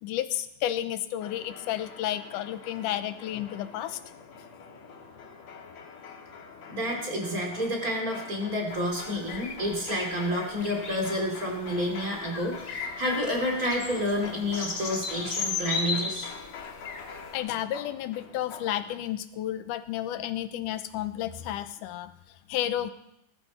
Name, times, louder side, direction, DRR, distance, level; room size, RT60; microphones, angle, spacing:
voice 1, 0.0-4.0 17.3-22.1 22.5-22.9, left 12 dB, 80° left, 11 dB, 2.2 m, -32 dB
sound 1, 1.2-19.0, left 5 dB, 60° left, 2.7 m, -44 dB
voice 2, 6.7-16.3, equal, 25° right, 1 dB, 3.0 m, -29 dB
sound 2, 8.7-17.3, left 4 dB, 40° left, 1.6 m, -36 dB
19.5 x 12.5 x 4.3 m, 0.79 s
omnidirectional pair, 3.8 m